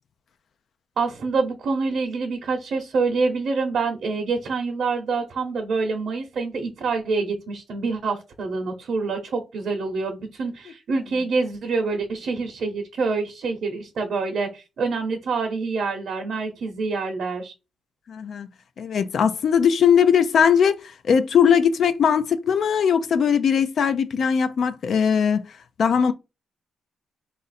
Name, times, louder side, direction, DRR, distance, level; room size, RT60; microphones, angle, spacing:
voice 1, 1.0-17.5, right 4 dB, 65° right, 0.7 m, -26 dB
voice 2, 18.1-18.5 18.8-26.1, left 7 dB, 65° left, 0.3 m, -20 dB
4.0 x 2.5 x 4.1 m
cardioid pair, 120°, 0 cm